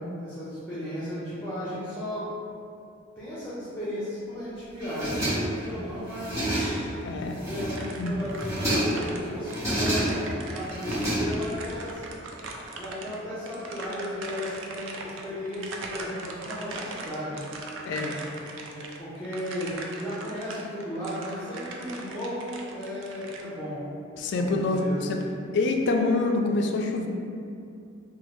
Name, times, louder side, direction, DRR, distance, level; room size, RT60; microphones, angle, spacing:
voice 1, 0.2-2.3 3.2-6.5 7.4-12.0 12.8-17.4 18.4-23.8 24.4-25.4, left 1 dB, 10° left, -11 dB, 0.6 m, -35 dB
sound 1, 4.8-5.7 6.1-6.9 7.3-7.9 8.3-9.1 9.4-10.3 10.7-11.7, right 1 dB, 15° right, 1.4 m, -28 dB
voice 2, 7.0-7.4 8.0-8.1 17.9-18.2 24.2-24.8 25.1-25.2 25.5-27.1, left 3 dB, 60° left, 3 dB, 0.3 m, -26 dB
sound 2, 7.7-23.4, right 3 dB, 70° right, 0.4 m, -40 dB
3.1 x 2.3 x 3.0 m, 2.5 s
head